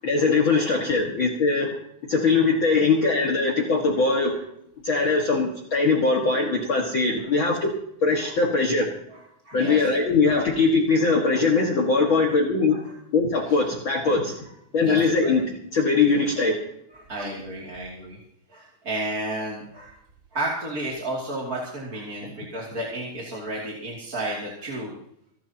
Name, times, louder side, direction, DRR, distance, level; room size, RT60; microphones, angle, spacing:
voice 1, 0.0-1.8 2.1-4.4 4.8-7.7 8.0-8.9 9.5-12.9 13.1-14.3 14.7-16.6 17.2-17.3, left 4 dB, 45° left, -1 dB, 2.2 m, -21 dB
voice 2, 9.4-9.8 10.2-10.5 12.1-12.2 14.8-15.3 17.1-18.2 18.5-19.9 20.3-25.0, right 1 dB, 30° right, -4 dB, 2.9 m, -32 dB
28.0 x 11.5 x 2.9 m, 0.73 s
omnidirectional pair, 3.5 m